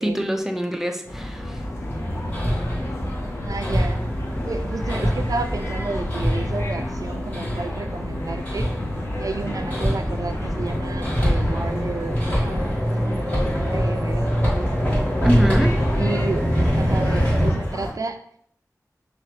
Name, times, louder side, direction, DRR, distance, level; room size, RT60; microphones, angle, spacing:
voice 1, 0.0-1.6 15.2-15.8, equal, 5° right, 4 dB, 0.6 m, -24 dB
sound 1, 1.1-17.9, equal, 40° left, 1.1 m, -32 dB
sound 2, 1.4-12.0, left 3 dB, 60° left, 0.3 m, -38 dB
Hammer, 1.8-17.5, equal, 25° left, 1.8 m, -24 dB
voice 2, 3.4-4.0 4.4-8.8 9.2-14.3 15.9-18.2, right 3 dB, 70° right, 8 dB, 0.4 m, -32 dB
5.5 x 2.4 x 3.3 m, 0.64 s
wide cardioid pair, 50°, 6 cm